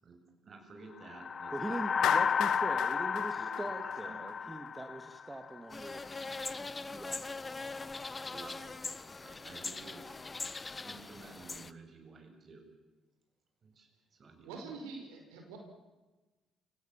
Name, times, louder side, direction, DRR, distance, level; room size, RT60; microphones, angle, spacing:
voice 1, 0.0-2.2 2.9-3.1 3.4-4.5 8.3-10.2 10.8-12.7 13.6-14.6, right 3 dB, 45° right, 4 dB, 7.5 m, -53 dB
sound 1, 1.1-5.6, left 6 dB, 45° left, 0.8 m, -32 dB
voice 2, 1.5-7.4, right 2 dB, 15° right, 7 dB, 2.3 m, -43 dB
Clapping, 2.0-4.3, left 12 dB, 70° left, 1.1 m, -35 dB
sound 2, 5.7-11.7, left 3 dB, 30° left, 1.3 m, -41 dB
voice 3, 14.4-15.6, right 4 dB, 80° right, 3 dB, 5.1 m, -45 dB
29.5 x 18.5 x 7.5 m, 1.2 s
hypercardioid pair, 50°, 0 cm